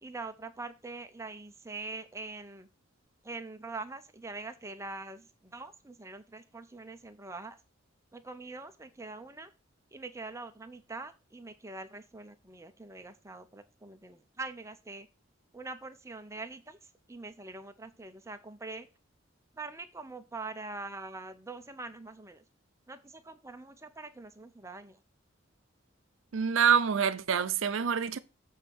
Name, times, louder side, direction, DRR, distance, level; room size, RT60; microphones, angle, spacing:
voice 1, 0.0-2.7 3.2-7.6 8.1-9.5 9.9-15.1 15.5-16.8 17.1-18.9 19.5-22.4 22.9-25.0, right 3 dB, 15° right, 0.6 m, -43 dB
voice 2, 26.3-28.2, right 7 dB, 80° right, 0.5 m, -26 dB
7.2 x 3.6 x 6.0 m
head